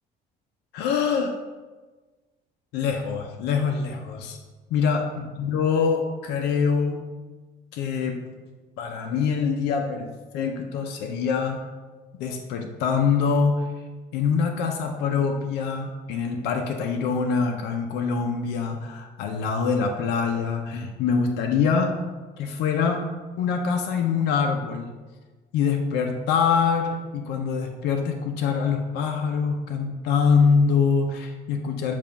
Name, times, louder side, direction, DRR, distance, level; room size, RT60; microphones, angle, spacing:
voice 1, 0.7-1.3 2.7-4.4 4.7-7.0 7.7-8.2 8.8-10.1 10.3-11.7 12.2-13.6 14.1-22.0 22.4-23.0 23.4-24.9 25.5-31.9, left 5 dB, 90° left, 3 dB, 0.6 m, -24 dB
7.1 x 2.5 x 5.6 m, 1.3 s
cardioid pair, 110°, 17 cm